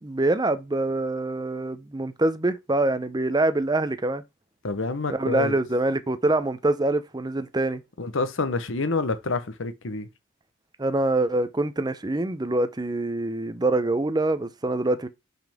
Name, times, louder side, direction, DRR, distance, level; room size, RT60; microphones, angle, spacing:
voice 1, 0.0-4.2 5.1-7.8 10.8-15.1, right 2 dB, 20° right, 0.6 m, -25 dB
voice 2, 4.6-5.5 8.0-10.1, left 3 dB, 70° left, 1.0 m, -27 dB
6.0 x 5.4 x 3.5 m
head